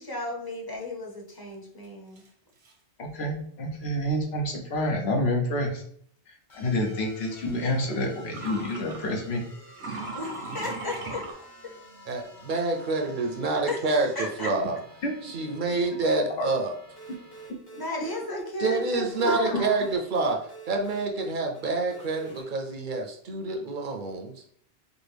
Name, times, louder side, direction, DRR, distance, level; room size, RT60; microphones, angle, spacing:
voice 1, 0.0-2.2 10.1-11.2 13.7-13.8 14.2-14.5 17.7-19.9, left 2 dB, 25° left, 0 dB, 0.8 m, -34 dB
sound 1, 2.2-2.3 2.6-2.7 7.1-7.2 8.3-9.0 9.7-11.3, right 2 dB, 85° right, 1.1 m, -37 dB
voice 2, 3.0-5.8 6.3-9.5 15.0-15.1 16.4-16.5 17.5-17.6 19.5-19.6, left 1 dB, 90° left, 2 dB, 1.1 m, -28 dB
sound 2, 6.5-17.5, left 1 dB, 50° left, 1.5 m, -50 dB
voice 3, 12.1-14.8 15.2-16.7 18.6-24.4, right 3 dB, 60° right, 3 dB, 0.6 m, -27 dB
sound 3, 17.0-22.4, right 4 dB, 70° left, 1.5 m, -49 dB
4.8 x 2.2 x 3.3 m, 0.62 s
omnidirectional pair, 1.0 m